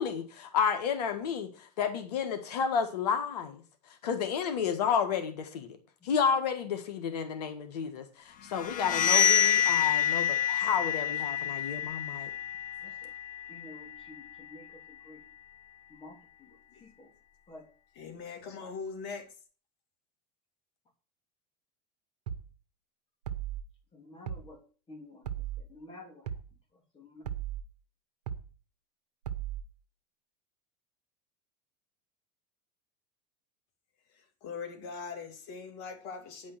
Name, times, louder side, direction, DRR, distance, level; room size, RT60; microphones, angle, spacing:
voice 1, 0.0-3.6 4.0-5.7 6.0-12.3, left 7 dB, 85° left, 1.7 m, -31 dB
sound 1, 8.5-14.2, left 10 dB, 45° left, 1.3 m, -28 dB
voice 2, 13.5-14.2 14.5-14.6 15.1-15.2 16.0-16.1 17.0-17.1 17.5-17.6 24.1-24.6 24.9-25.2 25.7-26.1 27.0-27.2, left 2 dB, 25° left, 2.9 m, -48 dB
voice 3, 17.9-19.3 34.1-36.6, left 5 dB, 60° left, 2.6 m, -41 dB
sound 2, 22.3-22.5 23.2-23.6 24.3-24.5 25.2-25.6 26.3-26.5 27.2-27.6 28.3-28.5 29.2-29.6, right 10 dB, 90° right, 1.1 m, -36 dB
10.0 x 5.2 x 7.8 m
supercardioid pair, 100°, 20 cm